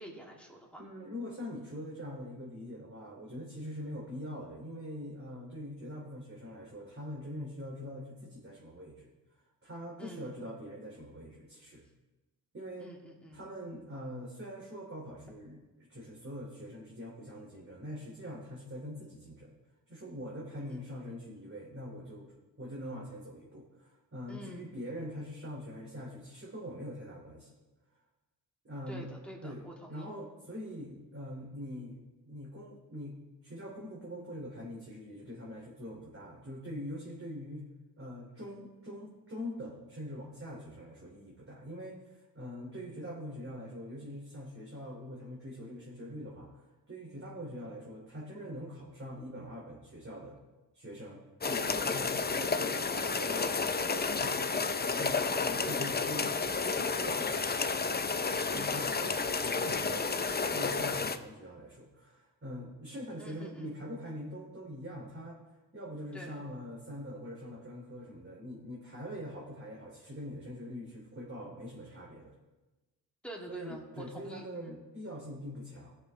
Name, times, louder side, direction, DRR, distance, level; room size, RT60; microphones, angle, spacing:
voice 1, 0.0-0.8 10.0-10.3 12.8-13.4 20.7-20.8 24.3-24.7 28.9-30.1 58.5-59.1 63.2-63.8 66.1-66.4 73.2-74.8, equal, 5° left, -2 dB, 2.8 m, -47 dB
voice 2, 0.8-9.1 9.6-11.8 12.5-13.0 13.3-19.5 19.9-27.5 28.6-29.1 29.4-33.1 33.4-37.6 38.0-50.4 50.7-51.2 51.5-53.6 54.2-54.5 54.8-57.7 58.5-65.4 65.7-72.3 73.5-76.0, equal, 30° right, -3 dB, 2.9 m, -43 dB
sound 1, 51.4-61.2, left 4 dB, 20° left, 0.8 m, -31 dB
16.0 x 6.7 x 3.4 m, 1.1 s
supercardioid pair, 65°, 44 cm